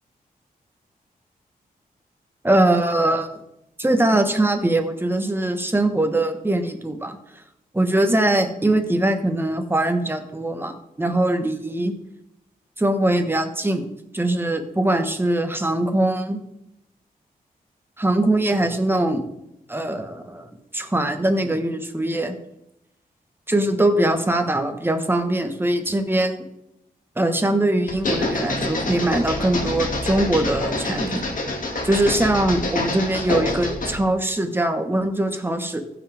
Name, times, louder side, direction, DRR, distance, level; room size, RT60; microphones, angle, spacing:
voice 1, 2.4-3.3 3.8-7.2 7.7-11.9 12.8-13.8 14.1-16.4 18.0-19.3 19.7-20.5 20.7-22.3 23.5-26.4 27.2-31.3 31.8-35.8, right 1 dB, 15° right, 6 dB, 1.3 m, -22 dB
sound 1, 27.9-34.0, left 2 dB, 60° left, 2.2 m, -26 dB
15.5 x 6.1 x 3.5 m, 0.85 s
cardioid pair, 75°, 16 cm